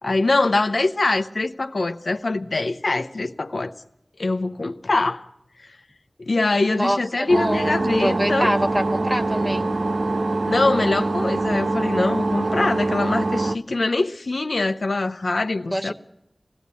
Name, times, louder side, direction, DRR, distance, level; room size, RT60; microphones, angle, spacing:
voice 1, 0.0-3.7 4.2-5.3 6.2-8.5 10.5-15.9, left 2 dB, 80° left, 0.8 m, -23 dB
voice 2, 6.7-7.6 8.0-9.7 15.7-15.9, equal, 15° right, 1.6 m, -24 dB
sound 1, 7.3-13.6, right 2 dB, 80° right, 0.7 m, -24 dB
20.0 x 15.5 x 8.3 m
wide cardioid pair, 50°, 0 cm